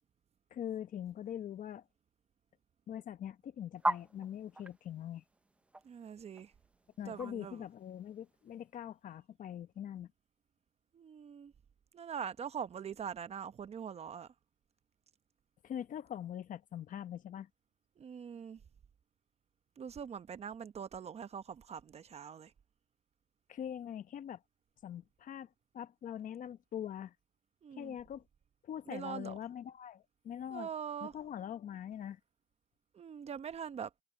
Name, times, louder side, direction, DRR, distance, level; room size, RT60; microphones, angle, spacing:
voice 1, 0.5-1.8 2.9-5.2 7.0-10.1 15.6-17.5 23.5-24.4 24.8-27.1 27.8-28.2 28.6-30.7 31.0-32.2, left 9 dB, 50° left, 1.0 m, -43 dB
sound 1, 3.8-8.4, right 1 dB, 5° right, 0.6 m, -38 dB
voice 2, 5.8-6.5 7.0-7.6 10.9-11.5 11.9-14.3 18.0-18.6 19.8-22.5 27.6-28.0 28.9-29.4 30.5-31.1 32.9-33.9, right 7 dB, 40° right, 0.9 m, -43 dB
cardioid pair, 110°, 17 cm